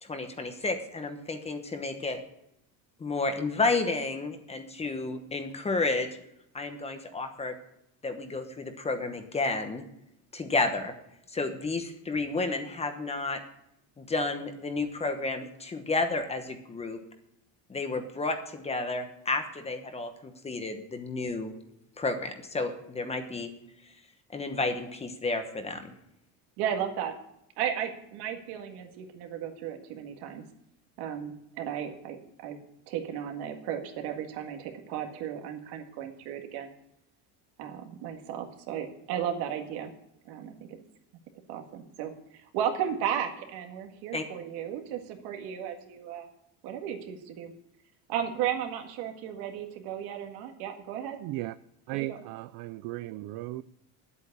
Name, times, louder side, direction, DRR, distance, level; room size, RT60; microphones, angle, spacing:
voice 1, 0.0-2.2 3.0-6.1 6.5-7.6 8.0-9.8 10.3-10.9 11.3-13.4 14.0-17.0 17.7-21.5 22.0-23.5 24.3-25.9 44.1-44.2, left 3 dB, 15° left, 1.0 m, -31 dB
voice 2, 26.6-27.2 27.6-30.4 31.0-32.2 32.4-32.6 32.9-36.7 37.6-39.9 40.3-40.6 41.5-46.3 46.6-47.5 48.1-51.2 51.9-52.2, right 9 dB, 70° right, 2.0 m, -34 dB
voice 3, 51.2-51.5 51.9-53.6, right 18 dB, 55° right, 0.4 m, -36 dB
9.8 x 8.3 x 8.1 m
cardioid pair, 160°, 40 cm